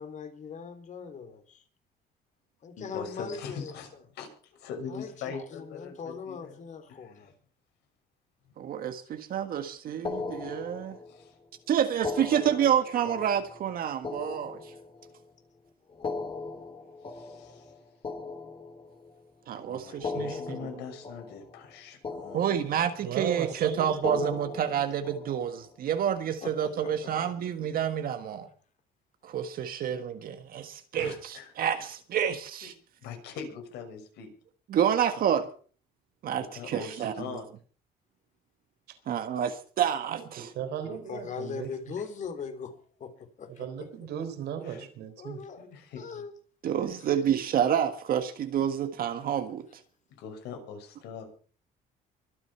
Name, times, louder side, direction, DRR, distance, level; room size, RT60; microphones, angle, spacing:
voice 1, 0.0-1.6 2.6-3.7 4.9-7.3 17.4-17.5 26.4-27.3 29.8-29.9 40.8-43.9 45.2-45.7 45.9-46.3 47.0-47.1, left 6 dB, 45° left, 3.4 m, -40 dB
voice 2, 2.8-3.9 4.2-6.5 7.1-7.3 11.1-11.3 17.1-17.7 19.6-22.5 31.0-31.5 32.6-32.7 33.0-34.3 36.3-37.5 44.6-44.9 45.6-46.0 46.9-47.0 50.1-51.2, left 6 dB, 80° left, 6.4 m, -42 dB
voice 3, 8.6-11.0 11.7-14.7 19.5-20.6 22.3-28.5 29.2-32.7 34.7-35.5 36.2-37.2 39.1-40.5 46.6-49.6, right 9 dB, 60° right, 1.6 m, -29 dB
sound 1, 10.0-11.3 11.9-15.2 15.9-19.2 19.9-21.8 22.0-23.1 23.9-25.7, left 4 dB, 30° left, 3.1 m, -38 dB
voice 4, 23.0-24.3 36.7-37.4 38.9-39.0 40.1-41.7 43.6-45.4, right 9 dB, 75° right, 3.9 m, -36 dB
24.0 x 8.2 x 5.7 m
cardioid pair, 110°, 17 cm